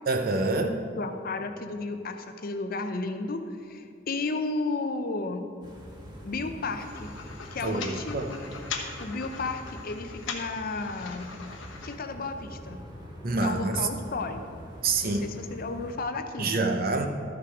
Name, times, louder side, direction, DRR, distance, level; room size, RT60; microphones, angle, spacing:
voice 1, 0.1-0.8 7.6-8.3 13.2-13.9 14.8-15.2 16.4-17.1, right 3 dB, 50° right, 5 dB, 0.8 m, -26 dB
voice 2, 1.0-5.5 6.2-7.1 7.5-8.4 9.0-11.3 11.8-12.8 13.4-14.7 15.0-16.7, left 3 dB, 50° left, 7 dB, 0.6 m, -33 dB
sound 1, 5.6-16.0, equal, 20° right, 1.3 m, -44 dB
sound 2, 6.8-12.0, left 5 dB, 75° left, 1.0 m, -40 dB
12.5 x 5.9 x 4.8 m, 2.3 s
head